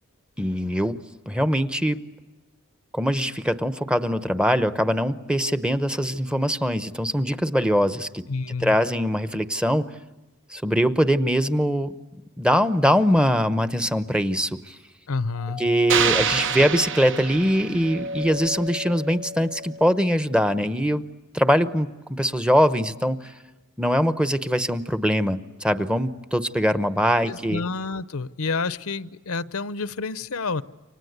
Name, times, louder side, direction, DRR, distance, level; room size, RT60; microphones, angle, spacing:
voice 1, 0.4-1.0 1.3-2.0 2.9-8.2 8.6-9.9 10.5-11.9 12.4-14.7 15.6-21.0 21.3-23.3 23.8-27.6, equal, 5° right, 12 dB, 0.9 m, -22 dB
voice 2, 8.3-8.8 15.1-15.6 27.3-30.6, left 4 dB, 70° left, 16 dB, 0.8 m, -29 dB
Doorbell, 15.3-20.2, left 2 dB, 45° right, 3.5 m, -37 dB
sound 1, 15.9-18.1, right 7 dB, 60° right, 1.1 m, -26 dB
29.0 x 25.5 x 8.1 m, 1.2 s
head